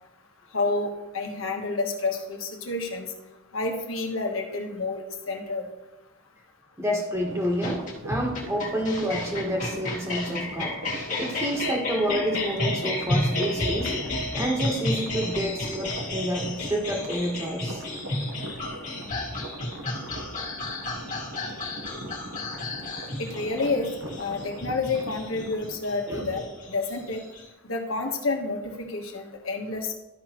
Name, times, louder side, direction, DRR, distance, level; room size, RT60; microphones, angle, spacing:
voice 1, 0.5-3.1 3.5-5.7 23.2-23.9 24.2-27.2 27.6-29.9, left 3 dB, 80° left, 2 dB, 1.3 m, -29 dB
voice 2, 6.8-10.8 11.2-13.9 14.3-17.8 26.1-26.3, equal, 15° right, -1 dB, 1.5 m, -29 dB
sound 1, 7.1-25.8, right 1 dB, 65° right, 1.2 m, -40 dB
sound 2, 7.6-27.4, left 2 dB, 40° left, 1.7 m, -32 dB
12.5 x 5.9 x 3.1 m, 0.99 s
head